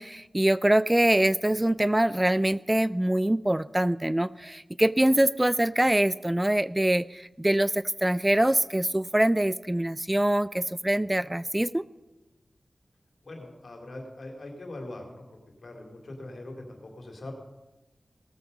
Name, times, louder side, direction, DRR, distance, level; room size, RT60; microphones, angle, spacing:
voice 1, 0.0-11.8, right 1 dB, 20° right, 18 dB, 0.3 m, -24 dB
voice 2, 13.2-15.2 15.6-17.3, left 2 dB, 70° left, 2 dB, 2.8 m, -41 dB
18.0 x 7.2 x 5.3 m, 1.1 s
cardioid pair, 40°, 0 cm